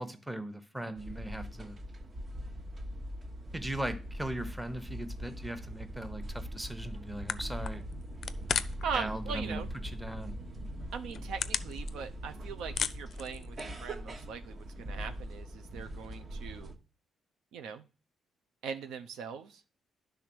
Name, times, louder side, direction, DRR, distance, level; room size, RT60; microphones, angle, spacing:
voice 1, 0.0-1.8 3.5-7.8 8.9-10.3, right 1 dB, 10° right, 0.9 m, -39 dB
sound 1, 1.0-16.7, equal, 40° right, 1.0 m, -41 dB
sound 2, 7.0-7.1 7.3-8.9 9.2-9.8 10.3-10.4 10.9-12.3 12.6-13.9, left 7 dB, 55° left, 0.4 m, -35 dB
voice 2, 8.8-9.7 10.9-16.7 17.5-17.8 18.6-19.6, right 6 dB, 85° right, 0.6 m, -40 dB
10.0 x 3.5 x 6.1 m
cardioid pair, 90°, 0 cm